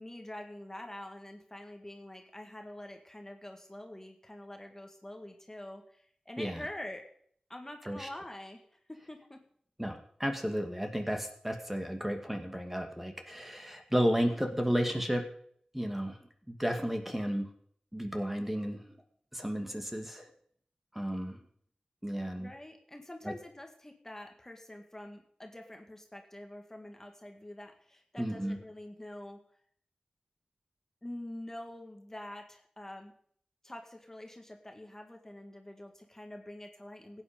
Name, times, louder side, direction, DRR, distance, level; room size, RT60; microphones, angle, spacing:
voice 1, 0.0-7.1 7.5-9.4 22.4-29.4 31.0-33.1 33.6-37.2, left 1 dB, 20° left, 4 dB, 1.9 m, -46 dB
voice 2, 9.8-15.2 15.7-17.5 17.9-18.9 19.3-20.3 20.9-21.4 22.0-22.5 23.2-23.3 28.2-28.6, equal, 10° right, 4 dB, 2.1 m, -33 dB
16.0 x 9.1 x 5.2 m, 0.62 s
cardioid pair, 50°, 2 cm